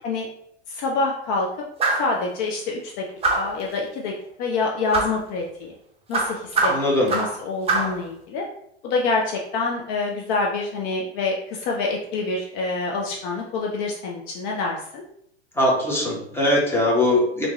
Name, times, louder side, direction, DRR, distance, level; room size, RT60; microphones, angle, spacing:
voice 1, 0.7-1.5 2.0-3.0 3.4-4.1 4.4-5.7 6.1-8.4 8.8-15.0, left 3 dB, 45° left, -1 dB, 0.6 m, -26 dB
sound 1, 1.8-2.1 3.2-3.6 4.9-5.2 6.1-7.4 7.7-8.0, right 3 dB, 20° right, 0.8 m, -23 dB
voice 2, 6.7-7.1 15.6-17.5, left 1 dB, 5° left, -4 dB, 1.2 m, -21 dB
3.5 x 2.6 x 3.1 m, 0.73 s
hypercardioid pair, 95°, 33 cm